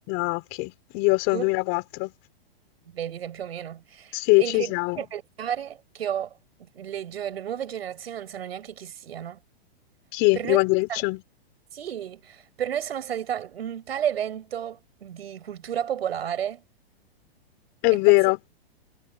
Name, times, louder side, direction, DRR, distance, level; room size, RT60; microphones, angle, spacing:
voice 1, 0.1-2.1 4.1-5.0 10.1-11.2 17.8-18.4, left 27 dB, 40° left, 4.4 m, -22 dB
voice 2, 2.9-6.4 6.7-9.4 10.3-10.6 10.9-11.0 11.7-16.6 17.9-18.0, right 9 dB, 80° right, 5.9 m, -32 dB
hypercardioid pair, 140°, 30 cm